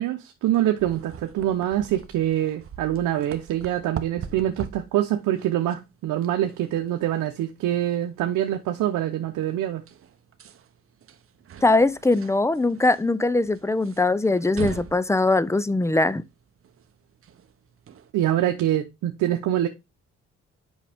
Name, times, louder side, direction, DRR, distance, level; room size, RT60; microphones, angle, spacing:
voice 1, 0.0-9.8 18.1-19.7, right 12 dB, 85° right, 0.8 m, -25 dB
sound 1, 0.8-18.1, right 8 dB, 45° right, 0.8 m, -43 dB
voice 2, 11.6-16.2, left 2 dB, 10° left, 0.5 m, -21 dB
7.5 x 5.5 x 3.5 m
cardioid pair, 90°, 30 cm